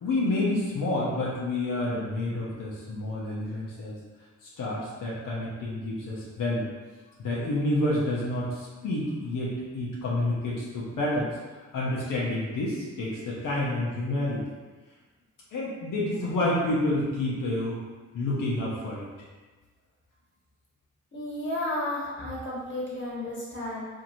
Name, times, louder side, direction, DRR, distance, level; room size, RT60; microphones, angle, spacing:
voice 1, 0.0-4.0 4.4-6.7 7.2-11.3 11.7-14.4 15.5-17.8 18.1-19.0, left 1 dB, 85° left, -6 dB, 0.7 m, -29 dB
voice 2, 21.1-23.9, left 1 dB, 35° left, -6 dB, 1.2 m, -32 dB
2.8 x 2.6 x 2.5 m, 1.3 s
cardioid pair, 45°, 31 cm